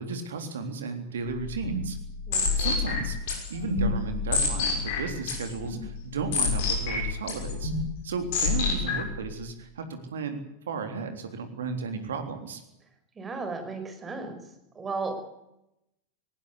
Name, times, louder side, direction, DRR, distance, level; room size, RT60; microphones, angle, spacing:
voice 1, 0.0-2.0 2.6-7.7 8.0-10.4 10.7-12.6, right 4 dB, 65° right, 7 dB, 3.6 m, -34 dB
sound 1, 1.3-9.2, left 4 dB, 50° left, 6.6 m, -29 dB
voice 2, 2.3-2.7 13.2-14.4 14.7-15.2, right 4 dB, 20° right, 6 dB, 5.2 m, -35 dB
19.0 x 18.5 x 8.4 m, 0.84 s
figure-of-eight pair, 90°, 0 cm